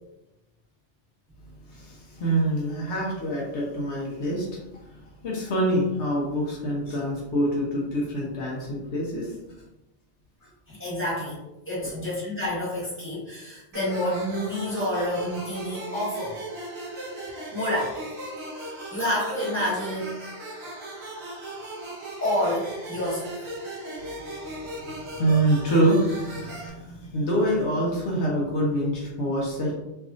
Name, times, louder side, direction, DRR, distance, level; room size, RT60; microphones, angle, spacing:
voice 1, 1.7-4.5 5.2-9.3 25.1-29.7, right 1 dB, 70° left, -4 dB, 1.0 m, -25 dB
voice 2, 10.7-16.4 17.5-18.1 18.6-20.2 22.2-23.3, left 1 dB, 10° left, -8 dB, 1.4 m, -29 dB
sound 1, 13.7-26.7, right 1 dB, 65° right, 1.1 m, -37 dB
3.2 x 2.6 x 2.4 m, 0.96 s
omnidirectional pair, 1.2 m